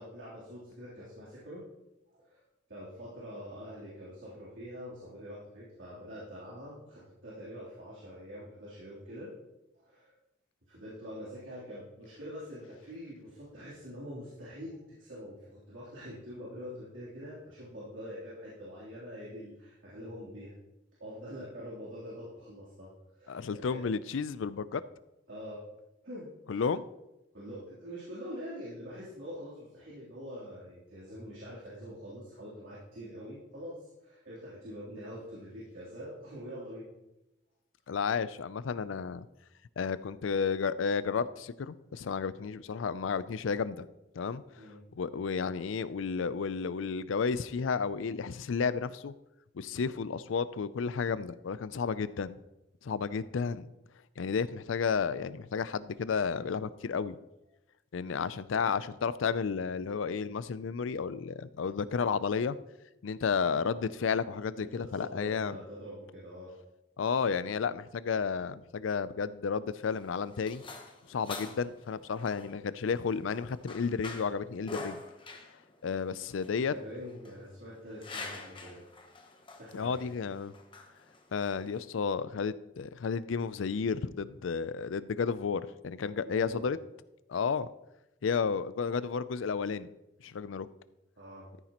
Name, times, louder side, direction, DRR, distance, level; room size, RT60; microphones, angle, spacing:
voice 1, 0.0-1.6 2.1-2.4 2.7-9.3 9.8-10.1 10.7-20.5 21.0-22.9 23.2-23.8 25.3-25.6 26.0-26.7 27.3-36.9 44.6-44.8 53.0-53.2 58.1-58.3 64.6-66.5 76.5-78.8 79.6-80.0 86.2-86.7 91.2-91.4, equal, 90° right, -10 dB, 3.3 m, -45 dB
voice 2, 23.3-24.8 26.5-26.8 37.9-39.3 39.8-43.8 44.2-44.4 44.9-49.1 49.5-52.4 52.8-53.7 54.2-57.2 57.9-62.6 63.0-65.6 67.0-70.6 71.1-75.0 75.8-76.7 79.7-80.5 81.3-86.8 87.3-87.7 88.2-89.9 90.2-90.7, left 5 dB, 85° left, 16 dB, 0.4 m, -32 dB
sound 1, 69.7-82.0, left 3 dB, 25° left, 1.0 m, -47 dB
13.5 x 9.2 x 3.0 m, 0.94 s
head